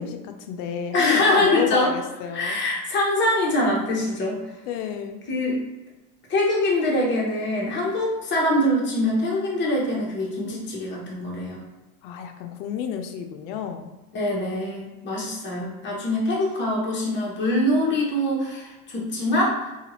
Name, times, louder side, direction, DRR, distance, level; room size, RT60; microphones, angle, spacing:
voice 1, 0.0-2.6 4.7-5.2 12.0-13.9, left 8 dB, 60° left, 6 dB, 0.5 m, -30 dB
voice 2, 0.9-1.9 2.3-4.4 5.3-5.6 6.3-11.7 14.1-19.6, left 1 dB, 25° left, -3 dB, 0.9 m, -23 dB
2.7 x 2.4 x 2.9 m, 1.1 s
supercardioid pair, 110°, 46 cm